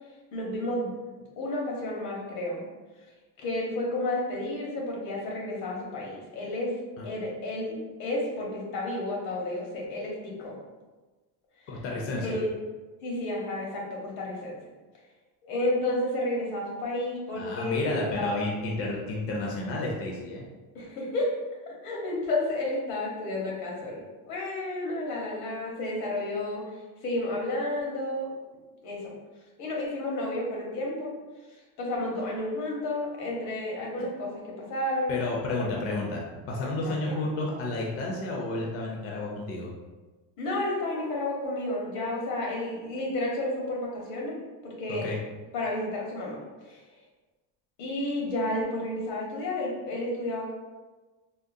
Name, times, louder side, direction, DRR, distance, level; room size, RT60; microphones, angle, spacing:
voice 1, 0.3-0.9 1.4-2.6 3.4-6.7 7.0-10.6 12.2-12.5 13.0-14.5 15.5-18.3 20.7-21.3 21.6-24.0 24.3-28.3 28.8-29.1 29.6-31.1 31.8-35.2 35.6-35.8 36.8-37.2 40.4-44.4 44.6-45.1 45.5-46.8 47.8-50.5, left 1 dB, 80° left, -2 dB, 1.1 m, -31 dB
voice 2, 11.7-12.3 17.4-20.4 35.1-36.2 36.5-39.7 44.9-45.2, left 2 dB, 40° left, -2 dB, 0.5 m, -31 dB
3.7 x 2.1 x 2.6 m, 1.2 s
cardioid pair, 155°, 37 cm